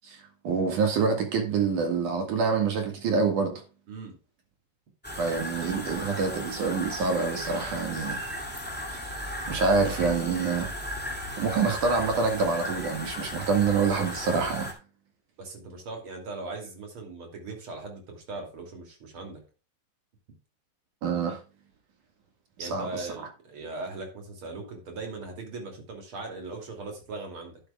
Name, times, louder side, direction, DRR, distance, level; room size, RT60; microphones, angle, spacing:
voice 1, 0.0-3.6 5.2-8.2 9.5-10.7 11.4-14.7 21.0-21.4 22.6-23.1, right 4 dB, 55° right, 2.6 m, -26 dB
sound 1, 5.0-14.7, left 1 dB, 10° left, 0.5 m, -36 dB
voice 2, 15.4-19.4 22.6-27.6, right 3 dB, 35° right, 2.7 m, -39 dB
11.5 x 10.0 x 2.4 m
omnidirectional pair, 5.6 m